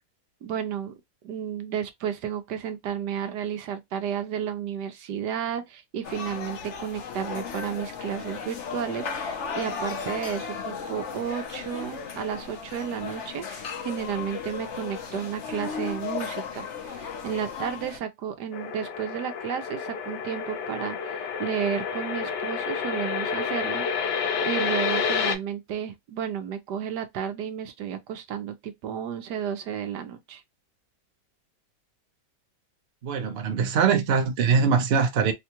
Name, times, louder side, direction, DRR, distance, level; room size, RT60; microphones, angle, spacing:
voice 1, 0.4-1.0 1.2-24.1 24.4-30.4, right 8 dB, 75° right, 1.2 m, -32 dB
sound 1, 6.0-18.0, left 6 dB, 55° left, 0.9 m, -35 dB
sound 2, 18.5-25.4, left 6 dB, 80° left, 1.4 m, -29 dB
voice 2, 33.0-35.3, right 6 dB, 50° right, 0.8 m, -22 dB
3.6 x 2.3 x 2.8 m
omnidirectional pair, 1.9 m